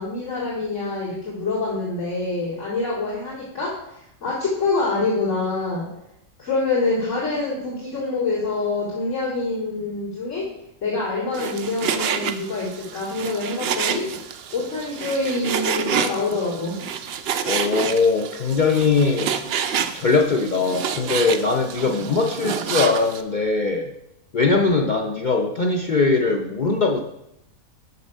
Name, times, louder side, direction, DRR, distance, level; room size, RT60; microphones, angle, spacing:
voice 1, 0.0-5.9 6.4-10.5 10.8-14.0 14.5-16.8, left 3 dB, 55° left, -10 dB, 2.8 m, -26 dB
Frying (food), 11.3-23.2, right 8 dB, 65° right, 0.6 m, -28 dB
voice 2, 17.5-19.3 19.9-23.9 24.3-27.0, left 4 dB, 75° left, 2 dB, 0.4 m, -21 dB
6.7 x 6.1 x 5.3 m, 0.82 s
omnidirectional pair, 1.5 m